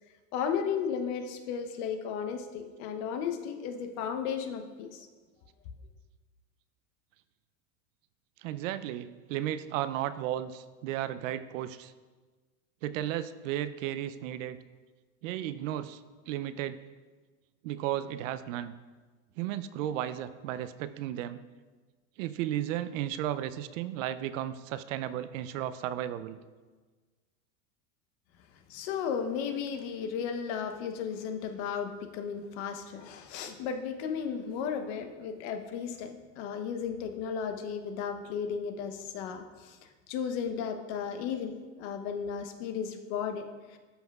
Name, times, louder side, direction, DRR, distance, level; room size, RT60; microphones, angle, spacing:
voice 1, 0.3-5.1 28.7-43.8, left 7 dB, 55° left, 6 dB, 0.9 m, -34 dB
voice 2, 8.4-11.9 12.8-14.6 15.2-16.0 16.3-16.8 17.6-18.8 19.4-21.4 22.2-26.4, right 12 dB, 75° right, 13 dB, 0.5 m, -34 dB
12.5 x 5.8 x 2.3 m, 1.4 s
supercardioid pair, 140°, 40 cm